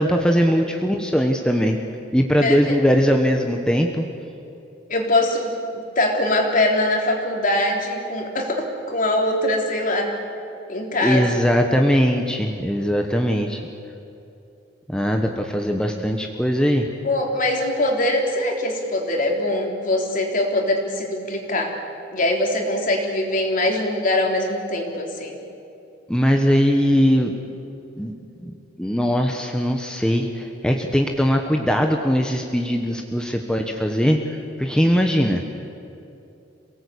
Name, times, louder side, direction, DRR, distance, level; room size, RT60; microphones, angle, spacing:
voice 1, 0.0-1.8 2.1-4.1 11.0-13.6 14.9-16.9 26.1-27.3 28.0-28.1 28.4-34.2 34.6-35.4, equal, 5° left, 2 dB, 1.2 m, -20 dB
voice 2, 2.4-2.8 4.9-10.2 10.7-11.4 17.0-21.7 22.1-25.4, left 1 dB, 45° left, 1 dB, 3.5 m, -22 dB
27.5 x 18.0 x 8.5 m, 2.7 s
head